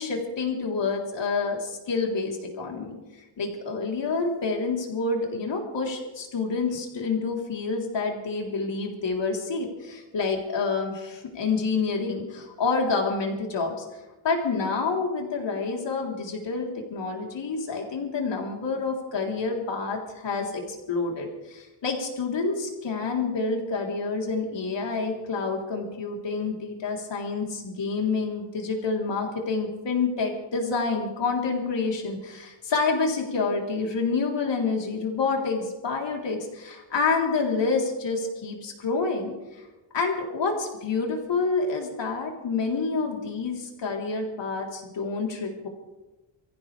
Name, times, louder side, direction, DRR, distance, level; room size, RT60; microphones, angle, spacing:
voice 1, 0.0-3.0 3.4-13.8 14.2-20.6 20.9-39.6 39.9-45.7, left 4 dB, 55° left, 0 dB, 3.6 m, -28 dB
25.0 x 15.0 x 3.3 m, 1.1 s
cardioid pair, 120°, 50 cm